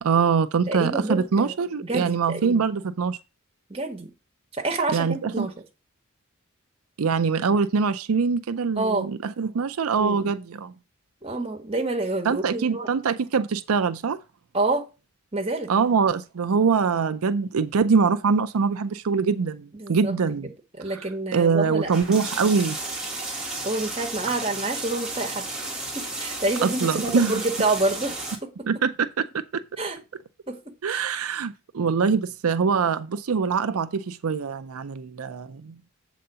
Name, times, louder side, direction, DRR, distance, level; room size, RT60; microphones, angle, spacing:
voice 1, 0.0-3.2 4.9-5.5 7.0-10.7 12.2-14.2 15.7-20.5 21.3-22.8 26.6-27.4 28.7-29.6 30.8-35.7, right 5 dB, 90° right, 0.5 m, -23 dB
voice 2, 0.7-1.5 1.8-2.6 3.7-4.1 4.6-5.5 8.7-9.1 10.0-10.3 11.2-12.9 14.5-14.8 15.3-15.7 19.7-20.1 20.8-21.9 23.6-28.5 29.8-30.0 30.5-30.6 30.9-31.0, right 2 dB, 25° right, 1.4 m, -28 dB
sound 1, 21.8-28.4, right 2 dB, 5° right, 1.7 m, -33 dB
7.7 x 4.1 x 6.7 m
head